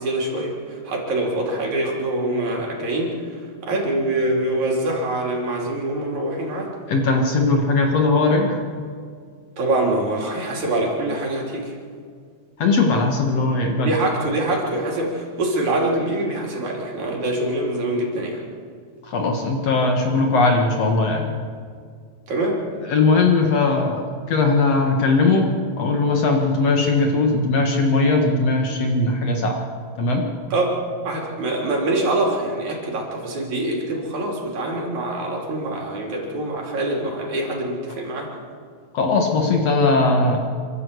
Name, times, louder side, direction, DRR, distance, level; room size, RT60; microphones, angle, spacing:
voice 1, 0.0-3.1 3.6-6.7 9.6-11.7 13.8-18.4 22.3-22.6 30.5-30.7 31.0-38.3, right 1 dB, 70° right, -1 dB, 4.4 m, -24 dB
voice 2, 6.9-8.6 12.6-13.9 19.0-21.3 22.8-25.5 25.8-29.5 30.0-30.2 38.9-40.4, left 3 dB, 60° left, 2 dB, 2.5 m, -19 dB
28.0 x 12.5 x 8.1 m, 2.1 s
omnidirectional pair, 3.5 m